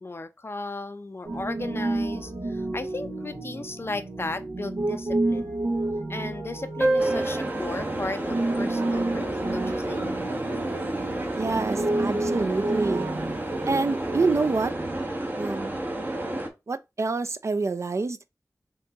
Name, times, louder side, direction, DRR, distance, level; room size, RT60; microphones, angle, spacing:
voice 1, 0.0-5.6 6.1-10.1, left 3 dB, 40° left, 0.4 m, -35 dB
Piano, 1.2-14.9, right 2 dB, 80° right, 1.3 m, -31 dB
sound 1, 6.8-11.8, right 2 dB, 5° right, 1.1 m, -31 dB
sound 2, 7.0-16.5, right 1 dB, 30° right, 0.8 m, -31 dB
voice 2, 11.4-13.1 13.7-14.7 15.4-15.7 16.7-18.2, right 3 dB, 50° right, 0.4 m, -26 dB
3.8 x 2.9 x 3.4 m
wide cardioid pair, 80°, 6 cm